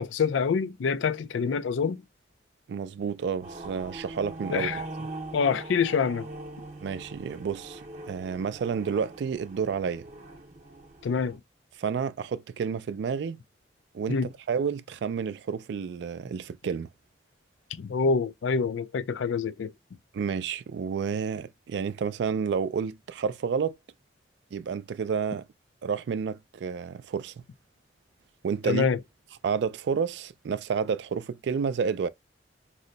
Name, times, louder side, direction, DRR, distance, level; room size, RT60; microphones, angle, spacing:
voice 1, 0.0-2.0 4.5-4.8 5.3-6.3 11.0-11.4 14.1-14.3 17.7-19.7 28.7-29.0, left 5 dB, 85° left, 0.4 m, -26 dB
voice 2, 2.7-4.8 6.8-10.1 11.8-13.4 13.9-14.2 14.5-16.9 20.1-23.8 24.5-25.5 25.8-27.3 28.4-28.9 29.4-32.1, right 6 dB, 70° right, 0.3 m, -30 dB
sound 1, 3.4-11.4, right 2 dB, 40° right, 0.6 m, -42 dB
2.7 x 2.1 x 3.8 m
head